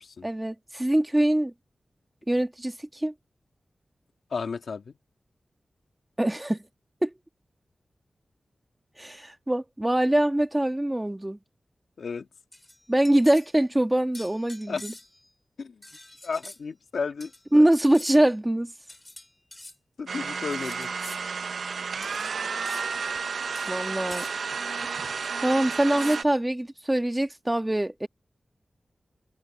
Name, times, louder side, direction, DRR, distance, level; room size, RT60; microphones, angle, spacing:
voice 1, 0.2-1.5 2.3-3.1 6.2-6.6 7.0-7.1 9.0-11.4 12.9-14.9 17.5-18.7 23.7-24.3 25.4-28.1, right 1 dB, 15° right, 1.3 m, -23 dB
voice 2, 4.3-4.9 12.0-12.3 14.7-14.8 15.6-15.8 16.2-17.6 20.0-20.9, left 5 dB, 90° left, 1.8 m, -33 dB
sound 1, 12.5-13.5 14.1-15.3 15.8-16.6 17.2-17.4 17.9-18.3 18.9-19.7 20.5-21.2 22.0-22.4 22.6-22.9 23.5-23.7 24.1-24.3 25.2-25.3 26.0-26.4, left 1 dB, 20° left, 2.9 m, -45 dB
sound 2, 20.1-26.2, right 5 dB, 85° right, 0.5 m, -32 dB
wide cardioid pair, 125°, 0 cm